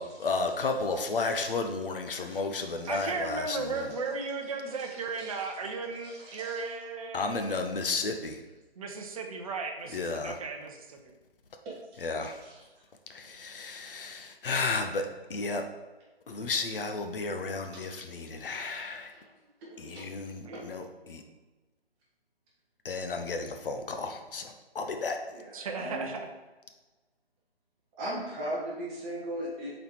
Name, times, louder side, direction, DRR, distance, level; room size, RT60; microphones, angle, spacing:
voice 1, 0.0-3.9 7.1-8.4 9.9-10.4 12.0-12.3 13.1-15.6 16.3-19.1 20.0-21.2 22.8-25.2, left 3 dB, 55° left, 5 dB, 1.0 m, -33 dB
voice 2, 1.1-1.5 2.3-3.1 3.6-3.8 4.6-6.6 11.6-12.6 17.7-17.9 18.7-18.9 19.9-20.1 20.4-20.7 25.3-26.1 28.0-29.8, right 1 dB, 15° right, -5 dB, 1.2 m, -40 dB
voice 3, 2.9-7.6 8.8-11.1 20.4-20.6 25.5-26.3, right 4 dB, 35° right, 3 dB, 0.9 m, -36 dB
6.7 x 4.1 x 4.5 m, 1.2 s
figure-of-eight pair, 145°, 32 cm